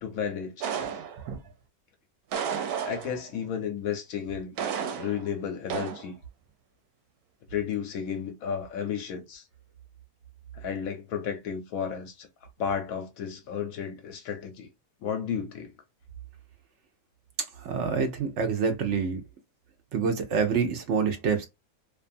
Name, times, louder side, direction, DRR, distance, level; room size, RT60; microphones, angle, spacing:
voice 1, 0.0-0.7 2.8-4.6 4.9-6.2 7.5-9.4 10.5-12.3 12.6-14.7 15.0-15.7, left 7 dB, 75° left, 1.0 m, -33 dB
sound 1, 0.6-1.5 2.3-3.4 4.6-5.3 5.7-6.1, right 7 dB, 85° right, 1.1 m, -32 dB
voice 2, 17.6-19.2 19.9-21.5, right 5 dB, 60° right, 0.8 m, -26 dB
2.6 x 2.4 x 2.5 m
omnidirectional pair, 1.6 m